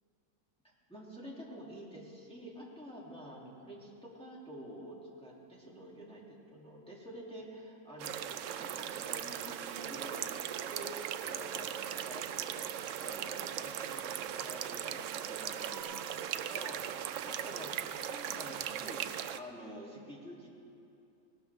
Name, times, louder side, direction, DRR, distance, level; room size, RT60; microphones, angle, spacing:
voice 1, 0.9-20.5, equal, 5° left, -6 dB, 2.6 m, -49 dB
sound 1, 8.0-19.4, right 10 dB, 70° right, 0.8 m, -38 dB
sound 2, 10.8-15.8, right 3 dB, 80° left, 4.7 m, -57 dB
19.5 x 18.5 x 3.5 m, 2.7 s
omnidirectional pair, 1.5 m